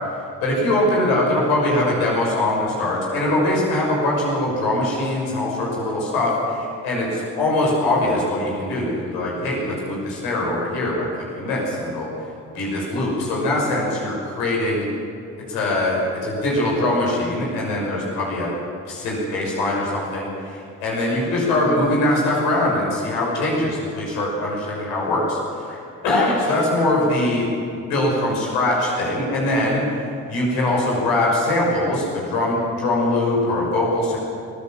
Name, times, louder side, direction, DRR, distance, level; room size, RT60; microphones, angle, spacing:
voice 1, 0.4-11.1 11.3-12.1 12.5-14.9 15.5-18.5 18.9-25.4 25.6-25.8 26.0-27.5 27.9-29.8 30.3-34.2, left 1 dB, 80° left, -3 dB, 6.2 m, -22 dB
21.5 x 16.0 x 7.6 m, 2.4 s
hypercardioid pair, 40°, 38 cm